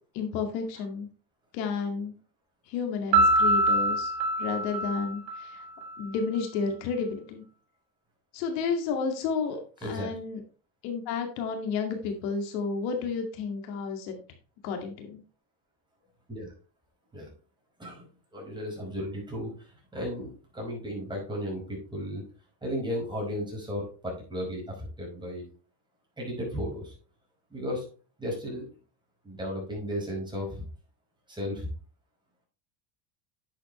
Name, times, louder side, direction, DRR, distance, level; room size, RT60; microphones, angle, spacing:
voice 1, 0.1-1.1 1.5-2.1 2.7-4.1 4.4-5.6 6.0-7.4 8.3-9.6 9.9-10.4 10.8-14.2 14.6-15.2, left 5 dB, 90° left, 4 dB, 2.4 m, -31 dB
Piano, 3.1-5.9, right 1 dB, 60° right, 3.5 m, -24 dB
voice 2, 9.8-10.1 16.3-16.5 17.1-17.3 17.8-22.2 22.6-25.4 26.2-26.9 27.5-27.9 28.2-28.6 29.2-30.7 31.3-31.7, equal, 10° right, -2 dB, 5.1 m, -35 dB
10.0 x 7.7 x 3.2 m, 0.38 s
cardioid pair, 135°, 50 cm